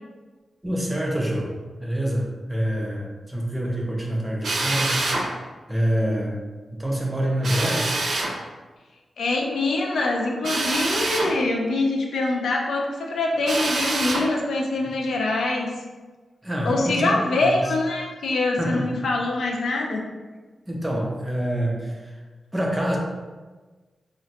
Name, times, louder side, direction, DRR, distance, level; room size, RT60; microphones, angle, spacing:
voice 1, 0.6-1.5 1.8-5.3 5.7-6.3 6.7-8.0 16.4-17.6 18.6-18.9 20.7-22.2 22.5-23.0, right 1 dB, 10° right, -2 dB, 0.5 m, -26 dB
Drill, 4.4-5.3 7.4-8.3 10.4-11.3 13.4-14.3, right 2 dB, 70° right, 0.5 m, -25 dB
voice 2, 9.2-15.7 16.6-20.0, left 2 dB, 85° left, 0 dB, 0.4 m, -24 dB
2.5 x 2.1 x 4.0 m, 1.3 s
wide cardioid pair, 145°, 0 cm